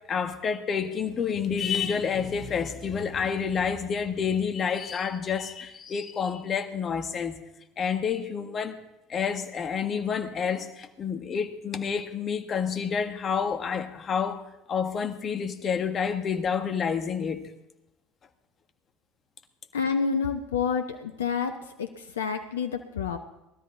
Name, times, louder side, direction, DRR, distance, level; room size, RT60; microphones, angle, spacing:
voice 1, 0.0-7.4 7.8-8.8 9.1-14.4 14.7-17.5, left 6 dB, 40° left, 1.7 m, -29 dB
voice 2, 19.7-23.2, left 6 dB, 80° left, 0.9 m, -29 dB
20.5 x 13.0 x 4.5 m
hypercardioid pair, 65°, 0 cm